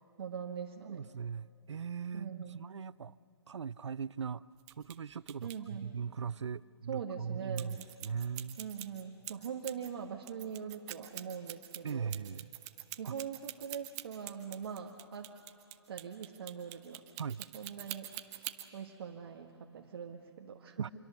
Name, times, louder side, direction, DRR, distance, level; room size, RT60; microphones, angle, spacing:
voice 1, 0.2-1.1 2.1-2.6 5.4-5.9 6.9-7.8 8.6-12.1 13.0-15.3 15.9-17.0 17.5-20.8, right 7 dB, 55° right, 1 dB, 1.6 m, -42 dB
voice 2, 0.8-3.2 3.5-4.4 4.8-8.6 11.8-12.5 13.0-13.1 17.2-17.4 20.8-20.9, right 6 dB, 85° right, 19 dB, 0.5 m, -39 dB
sound 1, 4.6-5.0 5.3-5.6 7.6-9.9 10.2-18.7, right 15 dB, 20° right, 0.9 m, -45 dB
26.0 x 24.0 x 7.0 m, 2.8 s
hypercardioid pair, 155°, 15 cm